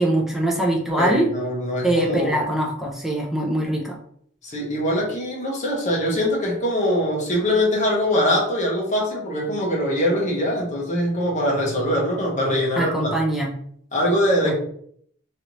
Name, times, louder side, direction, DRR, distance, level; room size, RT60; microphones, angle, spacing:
voice 1, 0.0-1.3 1.8-4.0 12.8-13.5 14.4-14.6, right 1 dB, ahead, -2 dB, 0.5 m, -22 dB
voice 2, 1.0-2.4 4.4-13.1 13.9-14.6, equal, 35° left, -2 dB, 0.9 m, -22 dB
3.2 x 2.6 x 3.0 m, 0.65 s
head